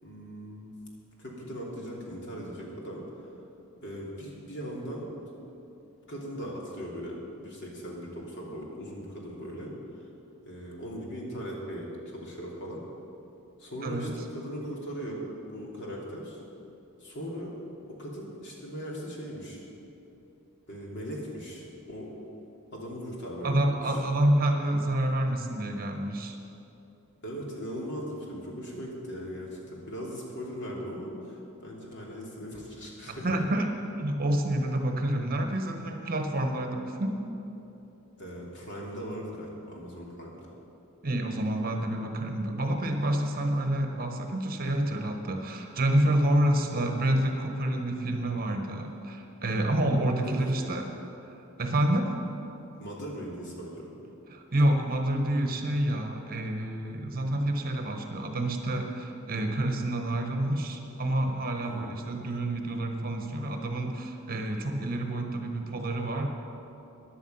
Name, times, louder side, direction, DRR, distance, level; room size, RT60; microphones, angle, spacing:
voice 1, 0.0-0.7 1.2-3.3 3.8-5.1 6.1-10.1 10.5-12.8 13.6-16.4 17.0-17.5 17.9-19.7 20.7-22.1 22.7-24.0 27.2-33.4 38.2-40.5 50.2-50.8 52.8-53.9 61.6-61.9, equal, 55° left, -3 dB, 3.0 m, -39 dB
voice 2, 23.4-26.4 33.1-33.7 34.0-37.2 41.0-50.9 51.2-52.2 54.3-66.3, right 1 dB, 45° right, 4 dB, 1.3 m, -28 dB
15.5 x 10.5 x 5.7 m, 2.9 s
head